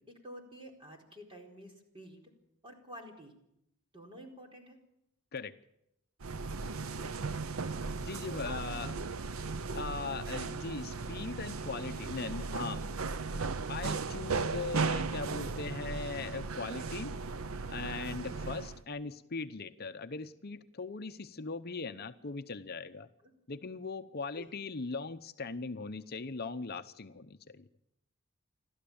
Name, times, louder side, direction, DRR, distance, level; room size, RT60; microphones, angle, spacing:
voice 1, 0.1-2.3 2.6-3.3 3.9-4.8 8.3-8.9 9.6-9.9 18.4-18.5 23.2-23.3 24.3-24.5, equal, 25° right, 2 dB, 4.4 m, -50 dB
sound 1, 6.2-18.8, right 4 dB, 80° right, 0.8 m, -36 dB
voice 2, 8.0-8.9 9.7-12.8 13.3-17.1 17.7-23.1 23.5-27.7, left 4 dB, 50° left, 8 dB, 0.8 m, -40 dB
29.0 x 12.5 x 8.7 m, 0.82 s
head